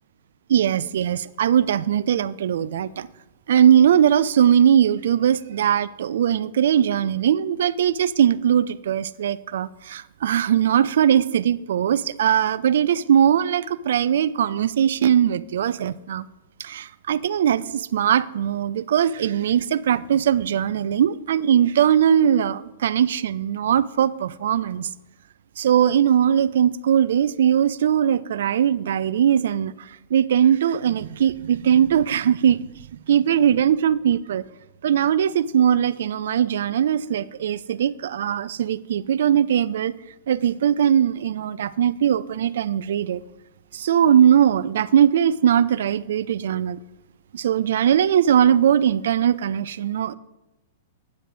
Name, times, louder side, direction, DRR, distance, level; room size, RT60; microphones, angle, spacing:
voice 1, 0.5-3.1 3.5-16.3 16.6-24.9 25.6-32.6 33.1-34.4 34.8-39.9 40.3-43.2 43.7-46.8 47.3-50.2, right 9 dB, 60° right, 0.4 m, -20 dB
14.5 x 9.4 x 2.5 m
figure-of-eight pair, 105°, 0 cm